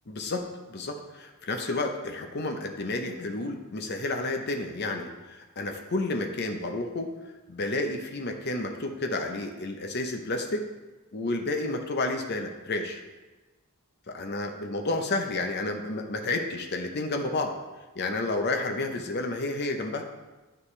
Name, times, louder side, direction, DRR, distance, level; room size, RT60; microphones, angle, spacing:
voice 1, 0.1-7.1 7.5-10.7 11.1-13.0 14.1-17.5 17.9-20.1, left 2 dB, 50° left, 4 dB, 0.7 m, -31 dB
9.8 x 6.5 x 3.3 m, 1.2 s
head